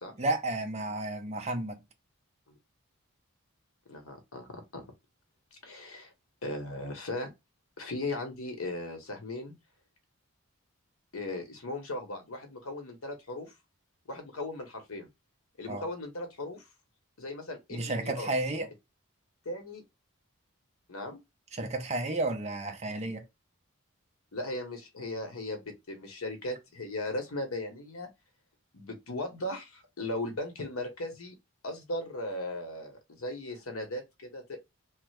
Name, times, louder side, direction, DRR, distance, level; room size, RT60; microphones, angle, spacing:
voice 1, 0.2-1.8 15.7-15.8 17.7-18.7 21.5-23.2, right 2 dB, 30° right, 0.6 m, -32 dB
voice 2, 3.9-4.8 5.6-6.1 6.4-7.3 7.8-9.5 11.1-13.5 14.1-15.1 15.6-16.6 17.2-18.3 19.4-19.8 20.9-21.2 24.3-28.1 28.7-31.3 31.6-34.6, left 2 dB, 85° left, 1.0 m, -37 dB
3.2 x 2.0 x 3.2 m
head